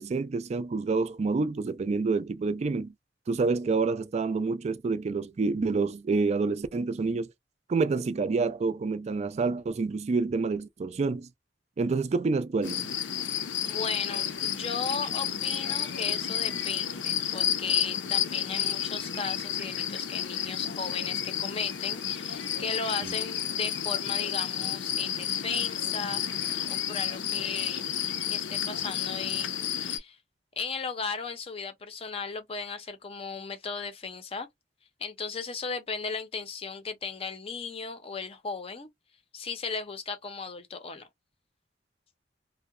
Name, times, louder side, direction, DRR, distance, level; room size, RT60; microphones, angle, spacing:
voice 1, 0.0-2.9 3.3-7.3 7.7-11.3 11.8-12.9 23.0-23.1, right 4 dB, 35° right, 0.3 m, -28 dB
sound 1, 12.6-30.0, left 9 dB, 80° left, 0.5 m, -31 dB
voice 2, 13.6-30.2 30.6-34.5 35.0-38.9 39.3-41.1, left 5 dB, 35° left, 0.5 m, -36 dB
2.7 x 2.1 x 2.4 m
head